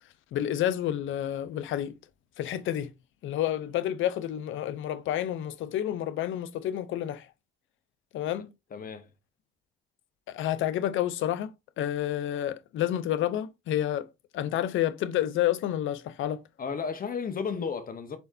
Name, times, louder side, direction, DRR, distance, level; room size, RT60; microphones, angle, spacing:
voice 1, 0.3-1.9 2.4-2.9 3.2-7.3 8.1-8.5 10.3-11.5 11.8-14.1 14.3-16.4, left 11 dB, 80° left, 0.6 m, -29 dB
voice 2, 8.7-9.1 16.6-18.2, left 6 dB, 45° left, 1.0 m, -33 dB
4.4 x 4.3 x 2.7 m
cardioid pair, 90°, 20 cm